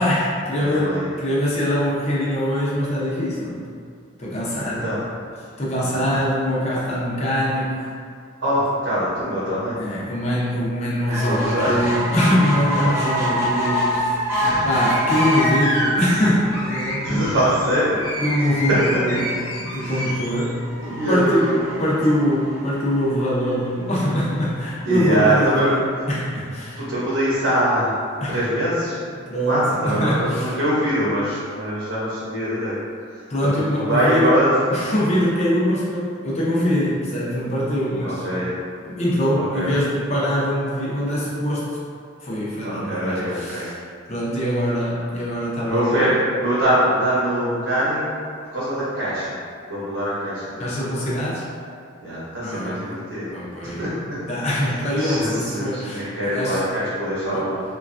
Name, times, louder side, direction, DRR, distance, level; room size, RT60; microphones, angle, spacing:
voice 1, 0.0-3.6 4.2-4.8 5.6-7.9 9.7-14.2 14.6-17.4 18.2-19.3 19.6-20.6 21.1-21.5 21.8-25.8 26.1-26.8 28.2-28.4 29.2-30.5 33.3-34.3 34.7-38.3 38.9-41.7 42.2-43.8 44.1-46.1 50.6-51.4 52.4-52.9 53.3-53.8 54.3-56.6 57.3-57.4, equal, 35° left, -7 dB, 0.6 m, -23 dB
voice 2, 0.6-1.1 4.8-5.0 6.0-6.2 8.4-9.8 11.1-11.9 12.8-12.9 14.4-14.7 17.0-18.0 18.7-18.8 19.8-20.1 20.8-21.6 24.8-25.7 26.8-27.9 28.3-29.0 29.5-32.7 33.4-34.5 38.0-38.5 39.3-39.7 42.6-43.7 45.6-48.0 48.5-49.4 49.7-51.0 52.0-53.3 53.6-54.2 55.0-57.6, right 1 dB, 75° right, -9 dB, 0.8 m, -23 dB
sound 1, 11.1-23.7 24.3-24.4 24.7-24.8 25.0-25.1, equal, 15° right, 0.6 m, -27 dB
sound 2, 14.8-20.5, equal, 90° left, 0.8 m, -29 dB
3.1 x 2.3 x 2.4 m, 2.2 s
head